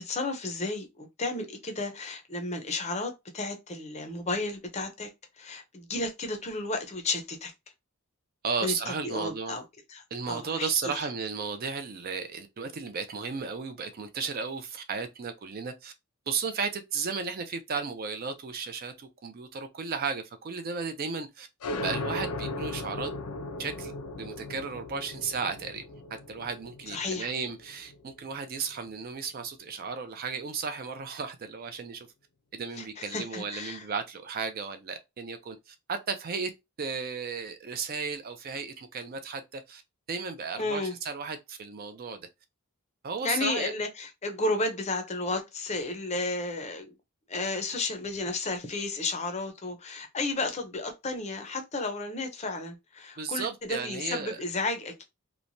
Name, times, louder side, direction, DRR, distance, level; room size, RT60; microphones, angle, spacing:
voice 1, 0.0-5.1 5.4-7.5 8.6-9.6 9.9-10.0 10.3-11.1 26.9-27.3 32.8-33.8 40.6-40.9 43.2-47.0 47.3-55.0, left 2 dB, 30° left, 0.5 m, -33 dB
voice 2, 8.4-9.6 10.1-15.9 16.3-21.5 21.8-23.1 23.6-23.9 24.2-25.8 26.3-32.1 32.5-36.5 36.8-39.8 40.1-42.2 43.0-43.7 53.2-54.4, right 5 dB, 40° right, 0.4 m, -34 dB
sound 1, 21.6-28.9, left 2 dB, 75° left, 0.5 m, -37 dB
3.0 x 2.1 x 2.6 m
head